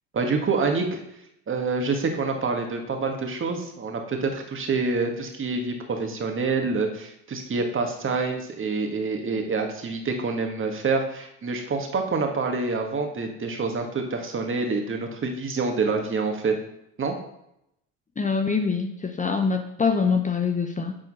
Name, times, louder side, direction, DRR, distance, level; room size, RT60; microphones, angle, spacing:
voice 1, 0.1-1.0 1.5-16.6 17.0-17.2, right 4 dB, 35° right, 3 dB, 1.8 m, -27 dB
voice 2, 18.2-21.0, left 5 dB, 20° left, 6 dB, 0.8 m, -24 dB
8.9 x 4.3 x 5.5 m, 0.79 s
supercardioid pair, 85°, 37 cm